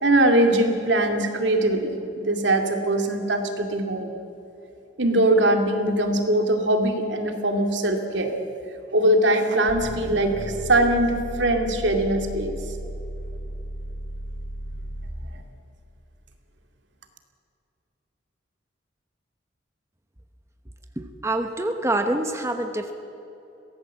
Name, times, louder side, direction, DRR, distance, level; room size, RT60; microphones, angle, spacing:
voice 1, 0.0-4.1 5.0-8.3 8.9-12.6 15.3-15.4, right 1 dB, 70° right, 4 dB, 2.4 m, -21 dB
sound 1, 9.7-15.3, right 1 dB, 35° left, 3.8 m, -35 dB
voice 2, 21.0-22.9, right 1 dB, 15° right, 5 dB, 0.9 m, -26 dB
23.0 x 17.5 x 7.5 m, 2.9 s
head